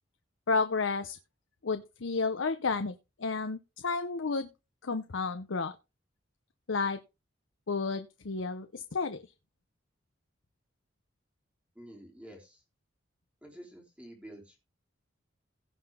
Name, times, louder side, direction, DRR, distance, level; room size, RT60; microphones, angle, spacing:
voice 1, 0.5-1.2 1.6-4.5 4.8-5.8 6.7-7.0 7.7-9.3, left 4 dB, 80° left, 0.7 m, -31 dB
voice 2, 11.8-12.6 13.4-14.6, right 1 dB, 5° right, 3.5 m, -49 dB
16.5 x 5.9 x 3.6 m
head